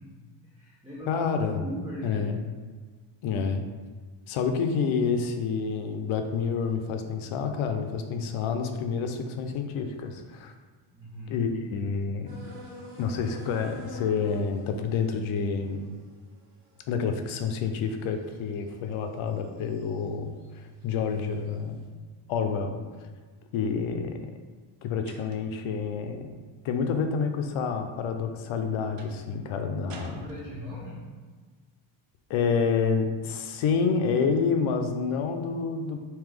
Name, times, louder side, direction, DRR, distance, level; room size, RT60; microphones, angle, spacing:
voice 1, 0.0-1.3 1.6-2.3 10.9-11.4 30.1-31.2, equal, 10° right, -7 dB, 0.4 m, -40 dB
voice 2, 1.1-1.6 2.0-2.4 3.2-3.6 4.3-10.5 11.3-12.6 13.0-16.0 16.9-21.8 22.3-22.8 23.5-24.2 24.8-26.3 26.6-30.3 32.3-36.0, left 5 dB, 75° left, 6 dB, 0.6 m, -28 dB
sound 1, 12.3-18.7 19.3-20.1 20.4-21.5, equal, 50° right, 0.9 m, -49 dB
sound 2, 25.1-25.7 29.0-29.3 29.9-31.0, right 4 dB, 90° right, 0.6 m, -47 dB
3.2 x 2.8 x 3.5 m, 1.4 s
cardioid pair, 165°, 50 cm